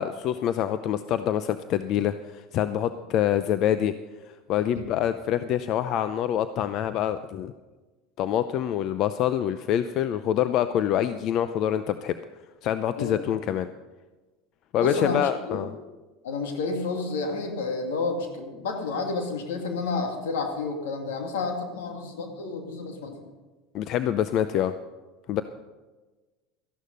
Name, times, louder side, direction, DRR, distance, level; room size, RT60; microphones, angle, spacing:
voice 1, 0.0-3.9 4.5-7.5 8.2-12.1 12.6-13.7 14.7-15.7 23.7-24.7 25.3-25.4, left 10 dB, 55° left, 12 dB, 0.6 m, -26 dB
voice 2, 14.8-15.6 16.2-23.2 25.4-25.5, left 3 dB, 85° left, 4 dB, 2.3 m, -30 dB
14.0 x 11.5 x 5.4 m, 1.2 s
supercardioid pair, 95°, 0 cm